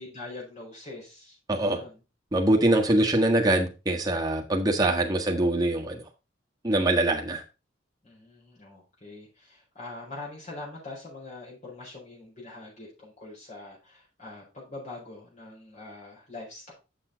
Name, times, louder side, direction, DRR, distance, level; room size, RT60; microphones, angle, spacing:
voice 1, 0.0-2.0 8.0-16.7, left 2 dB, 40° left, 4.7 m, -43 dB
voice 2, 2.3-6.0 6.6-7.4, right 1 dB, 20° right, 1.5 m, -23 dB
7.6 x 7.2 x 3.9 m
head